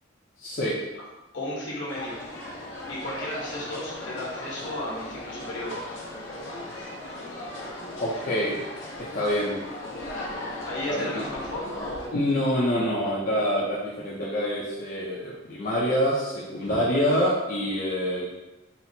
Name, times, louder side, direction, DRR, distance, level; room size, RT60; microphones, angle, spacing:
voice 1, 0.4-0.7 8.0-8.6 9.0-9.6 10.9-11.2 12.1-18.3, equal, 45° left, -6 dB, 0.6 m, -26 dB
voice 2, 1.3-2.2 2.9-5.8 10.6-12.2 16.6-16.8, left 1 dB, 70° left, -5 dB, 1.3 m, -34 dB
sound 1, 1.9-12.1, left 1 dB, 90° left, 1.0 m, -37 dB
4.2 x 2.0 x 4.2 m, 1.0 s
head